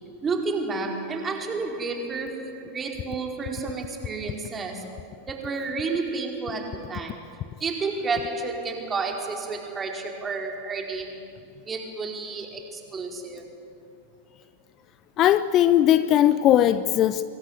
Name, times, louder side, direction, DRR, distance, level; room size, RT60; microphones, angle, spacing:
voice 1, 0.2-7.3 7.6-11.3 11.6-13.5, right 4 dB, 20° right, 4.7 m, -31 dB
voice 2, 15.2-17.2, left 12 dB, 35° left, 0.8 m, -19 dB
26.5 x 23.0 x 9.4 m
figure-of-eight pair, 90°, 0 cm